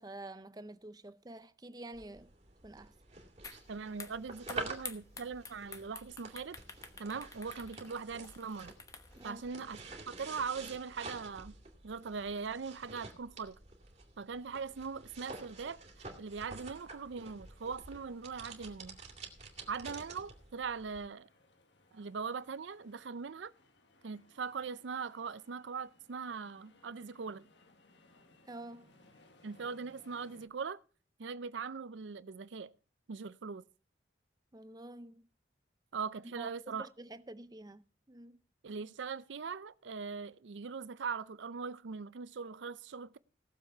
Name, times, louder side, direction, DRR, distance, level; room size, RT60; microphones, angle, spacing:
voice 1, 0.0-2.3 2.6-2.9 9.2-9.4 28.5-28.9 34.5-35.3 36.4-38.4, right 2 dB, 20° right, 0.6 m, -48 dB
sound 1, 1.9-21.0, right 3 dB, 35° right, 2.3 m, -49 dB
sound 2, 3.4-3.6 3.9-9.3, left 4 dB, 20° left, 1.0 m, -49 dB
voice 2, 3.7-6.6 7.0-8.7 9.2-9.8 10.1-11.5 11.8-13.6 14.2-15.8 16.2-19.0 19.7-21.3 21.9-23.5 24.0-27.5 29.4-30.8 31.2-32.7 33.1-33.6 35.9-36.9 38.6-43.2, right 5 dB, 80° right, 0.5 m, -41 dB
sound 3, 16.0-30.5, left 2 dB, 75° left, 1.7 m, -66 dB
18.0 x 7.3 x 4.6 m
head